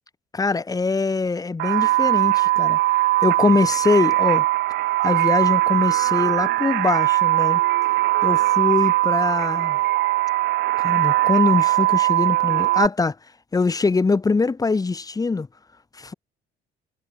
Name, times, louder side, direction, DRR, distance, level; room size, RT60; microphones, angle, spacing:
voice 1, 0.3-2.8 3.2-4.5 5.0-7.6 8.2-9.8 10.8-13.1 13.5-15.5 15.9-16.1, left 4 dB, 20° left, 3.3 m, -22 dB
sound 1, 1.6-12.9, right 18 dB, 80° right, 1.7 m, -20 dB
cardioid pair, 110°, 17 cm